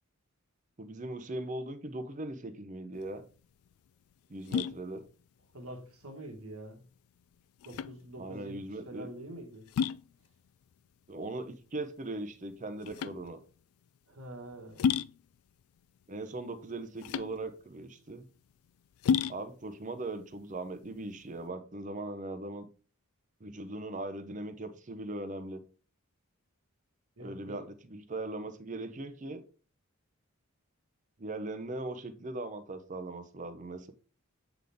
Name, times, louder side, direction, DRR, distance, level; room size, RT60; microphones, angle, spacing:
voice 1, 0.8-3.3 4.3-5.1 8.2-9.1 11.1-13.4 16.1-18.2 19.3-22.7 23.4-25.6 27.2-29.4 31.2-33.9, right 2 dB, 35° right, 0.7 m, -39 dB
sound 1, 2.9-21.5, left 7 dB, 80° left, 0.3 m, -36 dB
voice 2, 5.5-6.8 7.6-8.6 8.9-9.7 14.1-14.9 27.2-27.6, right 1 dB, 85° right, 1.7 m, -45 dB
8.1 x 3.9 x 3.5 m
head